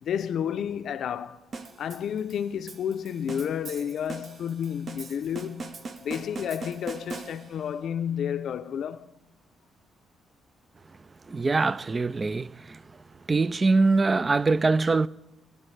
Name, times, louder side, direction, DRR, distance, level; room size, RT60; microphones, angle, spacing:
voice 1, 0.0-1.4 1.8-5.8 6.0-9.1, left 8 dB, 65° left, 0.5 m, -31 dB
sound 1, 1.5-7.7, right 3 dB, 50° right, 0.8 m, -41 dB
voice 2, 11.3-12.8 13.3-15.1, right 3 dB, 30° right, 0.3 m, -23 dB
19.5 x 10.5 x 3.2 m
cardioid pair, 90°, 0 cm